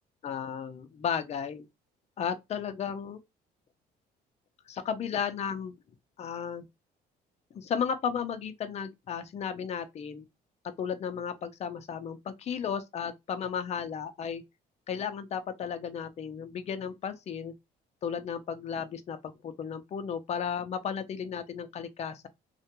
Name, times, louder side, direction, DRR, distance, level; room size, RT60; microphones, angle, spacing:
voice 1, 0.2-1.7 2.2-3.2 4.7-5.7 6.2-6.6 7.5-10.2 10.6-14.4 14.9-17.5 18.0-22.3, left 7 dB, 40° left, 0.5 m, -34 dB
2.5 x 2.1 x 2.8 m
cardioid pair, 110°, 17 cm